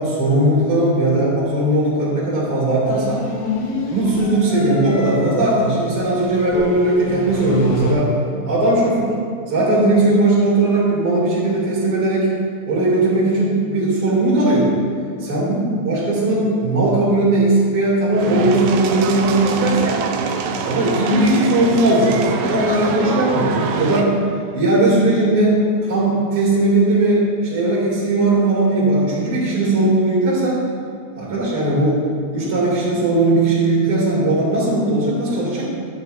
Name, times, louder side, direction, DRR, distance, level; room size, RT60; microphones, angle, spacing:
voice 1, 0.0-3.2 3.9-8.1 8.5-9.1 9.5-12.3 12.7-14.7 15.3-20.0 20.6-24.1 24.5-30.6 31.2-32.0 32.3-35.6, right 2 dB, 35° right, -8 dB, 2.8 m, -18 dB
sound 1, 2.8-7.9, left 3 dB, 70° left, 2.9 m, -27 dB
sound 2, 18.1-24.0, right 5 dB, 80° right, 2.5 m, -24 dB
11.5 x 8.7 x 2.7 m, 2.3 s
omnidirectional pair, 5.0 m